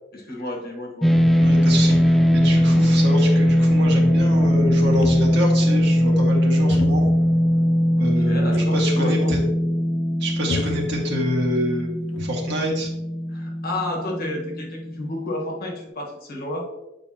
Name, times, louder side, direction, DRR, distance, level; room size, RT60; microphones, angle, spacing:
voice 1, 0.1-1.1 8.0-9.3 13.3-16.7, left 1 dB, 50° left, 0 dB, 1.3 m, -31 dB
sound 1, 1.0-15.4, equal, ahead, 0.4 m, -20 dB
voice 2, 1.4-7.1 8.0-9.4 10.2-11.9 12.2-12.9, equal, 60° right, -1 dB, 1.8 m, -27 dB
sound 2, 4.9-5.6 6.7-7.3 8.5-8.9 9.2-9.3 10.5-11.5 11.9-12.7, left 3 dB, 70° left, 0.5 m, -33 dB
8.5 x 5.1 x 2.8 m, 1.0 s
head